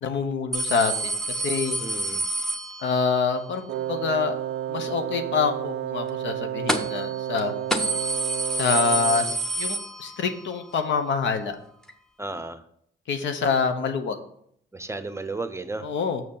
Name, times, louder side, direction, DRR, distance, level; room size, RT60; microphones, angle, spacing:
voice 1, 0.0-1.8 2.8-4.4 4.7-7.5 8.6-11.5 13.1-14.2 15.8-16.2, left 5 dB, 70° left, 7 dB, 1.1 m, -26 dB
sound 1, 0.5-3.2 6.7-7.1 7.4-7.5 7.7-10.4 10.8-10.9 11.9-12.0, right 2 dB, 5° left, 1.0 m, -28 dB
voice 2, 1.8-2.3 12.2-12.6 14.7-15.9, right 3 dB, 15° right, 9 dB, 0.7 m, -33 dB
Wind instrument woodwind instrument, 3.7-9.4, right 11 dB, 60° right, 0.4 m, -31 dB
6.5 x 6.3 x 5.5 m, 0.68 s
cardioid pair, 90°, 20 cm